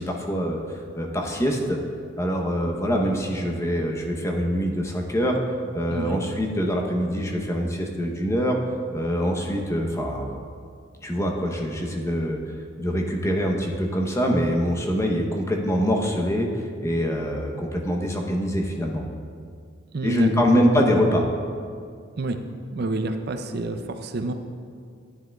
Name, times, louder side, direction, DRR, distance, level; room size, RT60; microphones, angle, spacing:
voice 1, 0.0-1.8 2.2-5.4 5.7-8.6 8.9-10.4 11.0-12.4 12.8-19.0 20.0-21.3, equal, 15° left, 1 dB, 0.8 m, -24 dB
voice 2, 5.9-6.2 19.9-20.3 22.2-22.4 22.7-24.3, right 2 dB, 55° right, 7 dB, 0.4 m, -28 dB
11.0 x 9.7 x 2.3 m, 2.2 s
head